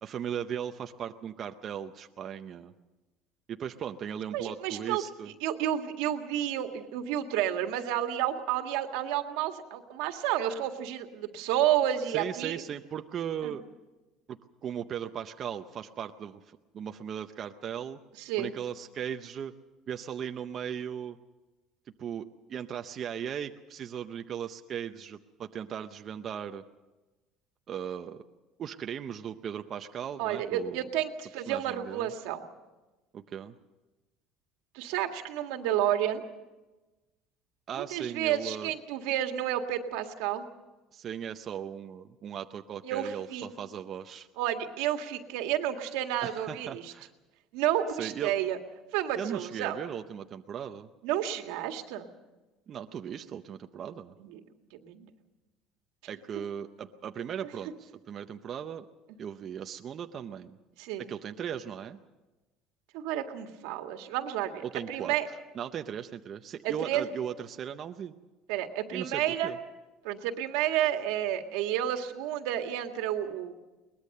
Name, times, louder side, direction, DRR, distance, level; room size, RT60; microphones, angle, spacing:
voice 1, 0.0-2.7 3.5-5.3 12.1-13.6 14.3-18.0 18.4-19.5 19.9-21.2 22.0-22.2 22.5-26.6 27.7-28.2 28.6-30.9 31.5-32.1 33.1-33.5 37.7-38.7 40.9-44.3 46.2-47.1 48.0-48.3 49.1-50.9 52.7-54.1 56.1-58.9 59.2-60.6 61.0-62.0 64.6-65.1 65.5-68.1 68.9-69.6, right 8 dB, 30° right, 6 dB, 0.6 m, -37 dB
voice 2, 4.3-5.0 5.4-12.6 13.4-13.5 18.2-18.5 30.2-32.4 34.7-36.2 37.7-40.4 42.8-43.5 44.4-46.9 47.5-48.6 48.9-49.8 51.0-52.1 54.2-54.4 54.8-55.1 60.8-61.1 62.9-65.3 66.6-67.1 68.5-69.5 70.0-73.5, right 11 dB, 85° right, 6 dB, 1.8 m, -30 dB
22.0 x 20.0 x 6.6 m, 1.1 s
cardioid pair, 170°, 0 cm